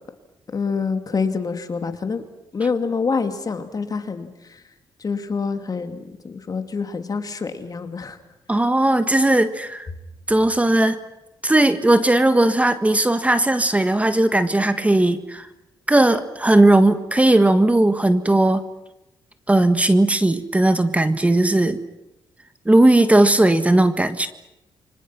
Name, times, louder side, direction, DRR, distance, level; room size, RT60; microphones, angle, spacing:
voice 1, 0.5-2.2 2.5-4.6 5.0-8.2, left 5 dB, 45° left, 8 dB, 2.6 m, -26 dB
voice 2, 8.5-9.9 10.3-11.0 11.4-15.5 15.9-18.6 19.5-21.8 22.6-24.3, right 1 dB, 15° right, 10 dB, 1.6 m, -17 dB
28.5 x 25.0 x 6.0 m, 0.91 s
cardioid pair, 70°, 9 cm